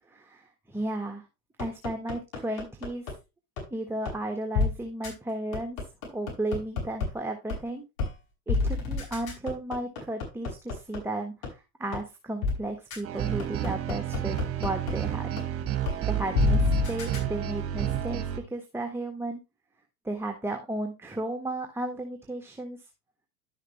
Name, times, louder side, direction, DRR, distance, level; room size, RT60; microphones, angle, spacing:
voice 1, 0.2-1.3 1.6-3.1 3.7-5.8 6.1-7.8 8.5-15.3 16.1-19.4 20.0-22.8, right 2 dB, 5° right, 4 dB, 1.4 m, -34 dB
sound 1, 1.6-3.1 3.6-3.7 4.1-4.2 4.5-4.7 5.0-5.1 5.5-7.1 7.5-7.6 8.0-8.1 8.5-11.0 11.4-11.5 11.9-12.0 12.4-12.5 12.9-13.0 13.4-14.9 15.4-15.5 15.9-16.0 16.3-17.2, left 4 dB, 60° left, 5.7 m, -27 dB
sound 2, 13.0-18.4, right 11 dB, 30° right, 2.0 m, -31 dB
11.5 x 6.6 x 3.2 m, 0.26 s
figure-of-eight pair, 85°, 45 cm